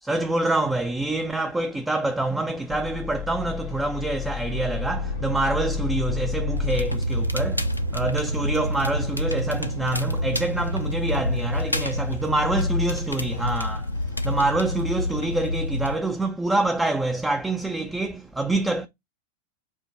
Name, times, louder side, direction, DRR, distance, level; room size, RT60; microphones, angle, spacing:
voice 1, 0.0-18.9, right 2 dB, 10° right, 0.4 m, -26 dB
sound 1, 1.6-6.9, left 9 dB, 55° left, 0.8 m, -32 dB
sound 2, 4.5-11.4, right 4 dB, 80° right, 0.7 m, -32 dB
Crackle, 6.6-16.0, left 2 dB, 85° left, 0.4 m, -28 dB
5.1 x 2.1 x 3.1 m
figure-of-eight pair, 90°, 0 cm